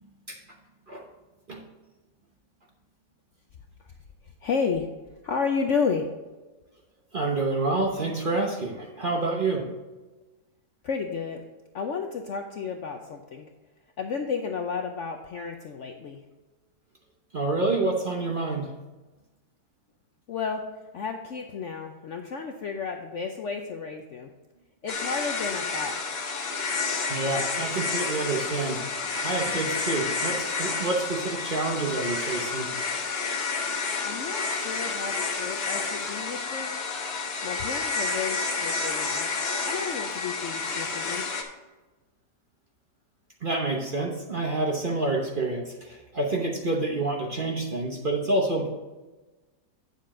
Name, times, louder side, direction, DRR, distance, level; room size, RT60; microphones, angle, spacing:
voice 1, 4.4-4.9 5.2-6.1 10.8-11.4 11.7-13.5 14.0-16.2 20.3-20.7 20.9-24.3 24.8-26.0 34.0-36.8 37.4-39.3 39.7-41.3, left 5 dB, 65° left, 4 dB, 0.8 m, -32 dB
voice 2, 7.1-9.7 17.3-18.7 27.1-28.8 29.2-32.7 43.4-48.7, right 2 dB, 40° right, 0 dB, 0.9 m, -28 dB
sound 1, 24.9-41.4, left 4 dB, 40° left, 1.1 m, -30 dB
9.2 x 7.1 x 3.7 m, 1.2 s
omnidirectional pair, 1.8 m